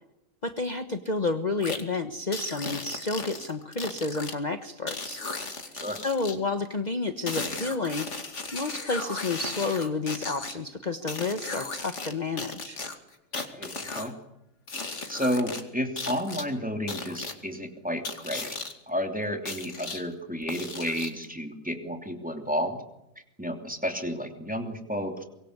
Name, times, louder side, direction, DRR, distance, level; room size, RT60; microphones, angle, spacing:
voice 1, 0.4-5.2 5.6-5.7 6.0-8.1 8.5-12.8, left 3 dB, 35° left, 7 dB, 1.4 m, -30 dB
sound 1, 1.6-1.8 2.3-4.3 4.9-6.4 7.3-10.5 11.1-12.1 12.4-14.1 14.7-15.6 16.0-16.4 16.9-17.3 18.0-18.7 19.5-20.0 20.5-21.2, left 3 dB, 60° left, 2.8 m, -36 dB
voice 2, 13.5-14.1 15.1-18.6 18.9-22.8 23.4-25.2, equal, 5° right, 4 dB, 3.0 m, -31 dB
24.5 x 23.0 x 8.2 m, 0.89 s
omnidirectional pair, 1.4 m